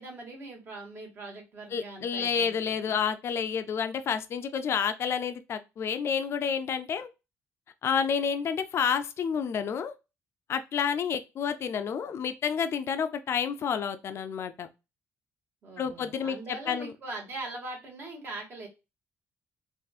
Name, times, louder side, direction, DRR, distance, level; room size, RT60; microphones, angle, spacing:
voice 1, 0.0-3.0 15.6-18.7, right 2 dB, 45° right, 1.6 m, -41 dB
voice 2, 1.7-7.1 7.8-9.9 10.5-14.7 15.8-16.9, left 7 dB, 55° left, 0.4 m, -29 dB
3.5 x 2.5 x 2.3 m
cardioid pair, 105°, 5 cm